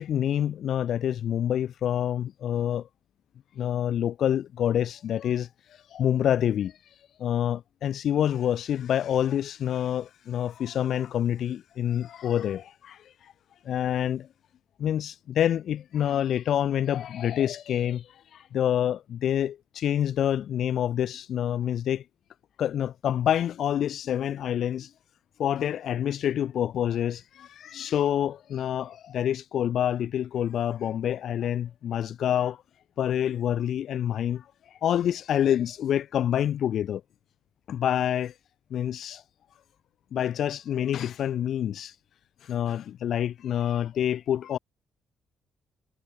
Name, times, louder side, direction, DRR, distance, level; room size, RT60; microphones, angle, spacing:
voice 1, 0.0-2.9 3.6-13.3 13.6-14.3 14.8-22.0 22.6-24.9 25.4-32.6 33.0-37.0 37.7-38.3 38.7-39.2 40.1-42.0 42.4-44.6, left 10 dB, 70° left, 1.2 m, -27 dB
cardioid pair, 90°, 0 cm